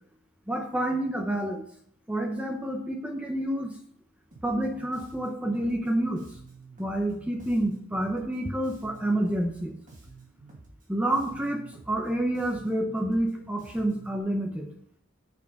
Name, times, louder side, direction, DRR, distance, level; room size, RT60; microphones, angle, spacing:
voice 1, 0.5-1.6 2.1-3.7 4.4-6.2 6.8-9.8 10.9-11.6 11.9-14.7, right 1 dB, 5° right, 2 dB, 0.7 m, -28 dB
Bass guitar, 4.3-14.2, right 3 dB, 40° right, 2.3 m, -50 dB
6.9 x 5.9 x 5.3 m, 0.66 s
head